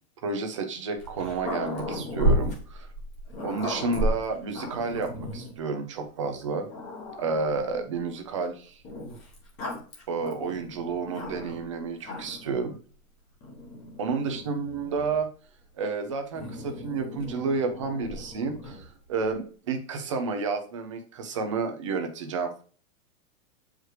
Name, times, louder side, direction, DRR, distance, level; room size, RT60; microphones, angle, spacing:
voice 1, 0.2-2.9 3.4-6.7 7.2-8.8 10.1-12.8 14.0-15.3 15.8-22.6, right 4 dB, 25° right, 5 dB, 0.5 m, -30 dB
Growling, 1.0-5.5 6.2-6.3 6.7-7.8 8.8-11.7 12.0-12.5 13.4-15.2 16.3-18.9, equal, 15° left, 1.0 m, -33 dB
7.8 x 4.8 x 3.2 m, 0.41 s
supercardioid pair, 175°, 42 cm